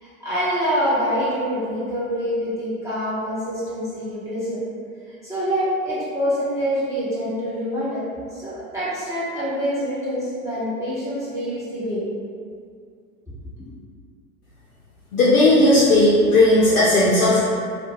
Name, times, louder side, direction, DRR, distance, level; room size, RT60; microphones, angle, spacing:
voice 1, 0.0-4.6 5.1-8.0 8.3-12.0 13.6-13.7, equal, 5° right, -12 dB, 0.9 m, -26 dB
voice 2, 15.1-17.5, left 1 dB, 75° left, -6 dB, 0.5 m, -15 dB
2.4 x 2.2 x 2.7 m, 2.2 s
figure-of-eight pair, 80°, 43 cm